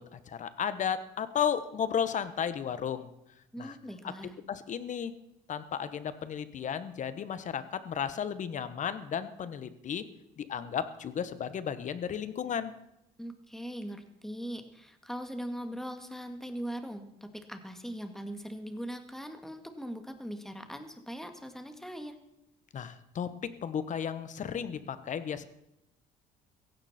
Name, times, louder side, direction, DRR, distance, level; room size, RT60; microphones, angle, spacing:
voice 1, 0.1-3.1 3.6-3.7 4.5-5.1 5.5-10.0 10.4-12.7 22.7-23.3 23.6-25.5, left 8 dB, 45° left, 13 dB, 1.3 m, -34 dB
voice 2, 3.5-4.3 13.2-22.2, equal, ahead, 6 dB, 2.0 m, -40 dB
16.0 x 16.0 x 4.4 m, 0.85 s
cardioid pair, 110°, 17 cm